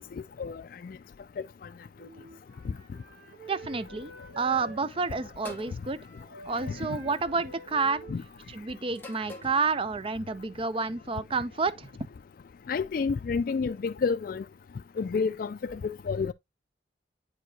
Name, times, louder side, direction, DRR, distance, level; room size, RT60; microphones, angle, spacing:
voice 1, 0.4-0.9 8.1-8.2 12.7-14.4 15.0-16.3, left 5 dB, 50° left, 0.3 m, -29 dB
Wind instrument woodwind instrument, 2.0-9.7, right 3 dB, 65° right, 2.6 m, -49 dB
voice 2, 3.5-6.0 6.5-8.0 8.5-11.9, right 4 dB, 30° right, 0.5 m, -30 dB
sound 1, 5.4-5.8 7.0-7.3 8.9-9.6, left 2 dB, 10° left, 1.2 m, -44 dB
9.0 x 4.8 x 2.7 m
head